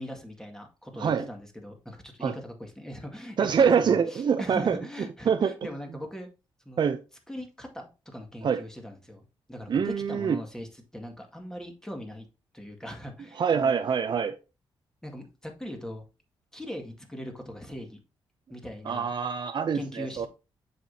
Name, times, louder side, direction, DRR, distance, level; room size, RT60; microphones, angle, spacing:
voice 1, 0.0-6.3 6.7-6.8 7.3-9.2 9.5-10.7 10.9-12.3 12.5-13.8 15.0-16.1 16.5-18.0 18.5-19.1 19.7-20.3, equal, 5° left, 2.0 m, -40 dB
voice 2, 3.4-4.8 5.3-5.5 6.8-7.0 8.4-8.6 9.7-10.4 13.4-14.4 18.9-20.3, right 6 dB, 55° right, 0.6 m, -25 dB
7.3 x 5.8 x 2.8 m
cardioid pair, 75°, 9 cm